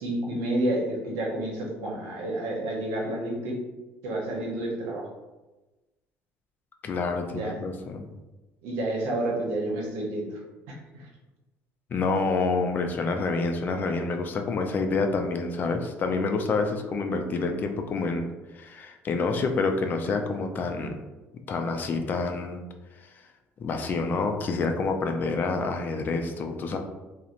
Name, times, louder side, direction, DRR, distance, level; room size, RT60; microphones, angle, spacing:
voice 1, 0.0-3.6 4.0-5.0 7.3-7.6 8.6-10.4 10.9-11.1, right 1 dB, 85° right, -2 dB, 0.8 m, -29 dB
voice 2, 6.8-8.1 11.9-18.3 18.5-21.0 21.5-22.6 23.6-26.8, left 3 dB, 40° left, 5 dB, 0.3 m, -28 dB
2.9 x 2.0 x 2.5 m, 1.1 s
cardioid pair, 110°, 5 cm